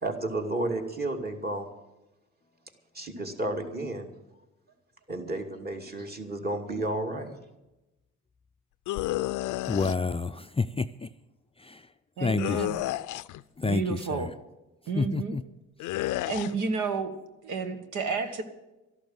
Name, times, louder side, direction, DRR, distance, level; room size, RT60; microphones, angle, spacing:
voice 1, 0.0-1.7 2.9-4.1 5.1-7.4, right 2 dB, 30° right, 3 dB, 2.6 m, -32 dB
sound 1, 8.9-10.0 12.4-13.4 15.8-16.5, left 16 dB, 85° left, 0.5 m, -31 dB
voice 2, 9.7-11.1 11.6-11.9 12.2-12.7 13.6-14.3 15.0-15.4, left 4 dB, 20° left, 9 dB, 0.4 m, -29 dB
voice 3, 12.2-12.7 13.6-14.3 14.9-15.3 16.2-17.1 17.4-18.4, right 5 dB, 80° right, 8 dB, 1.6 m, -31 dB
13.0 x 12.0 x 7.8 m, 1.0 s
cardioid pair, 90°, 30 cm